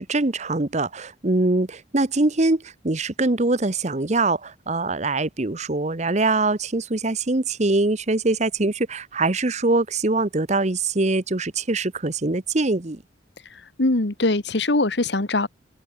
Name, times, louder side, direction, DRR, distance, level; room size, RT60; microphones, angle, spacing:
voice 1, 0.0-13.0, right 2 dB, 35° right, 1.0 m, -23 dB
voice 2, 13.8-15.5, left 2 dB, 65° left, 1.5 m, -21 dB
head